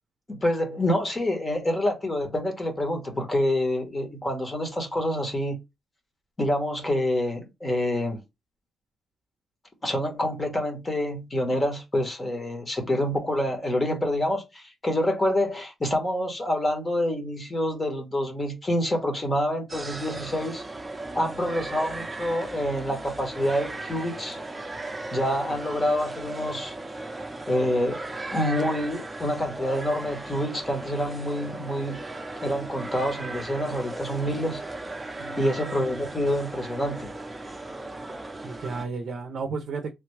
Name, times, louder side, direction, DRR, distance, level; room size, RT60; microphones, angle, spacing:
voice 1, 0.3-5.6 6.4-8.2 9.8-20.6 21.1-24.4 25.1-26.7 27.5-28.0 28.3-32.0 32.4-34.6 35.4-37.1, left 1 dB, 20° left, 1.1 m, -27 dB
sound 1, 19.7-38.8, right 2 dB, 15° right, 0.7 m, -37 dB
voice 2, 35.2-35.5 38.4-39.9, right 4 dB, 60° right, 0.5 m, -33 dB
3.3 x 2.2 x 3.2 m
cardioid pair, 120°, 0 cm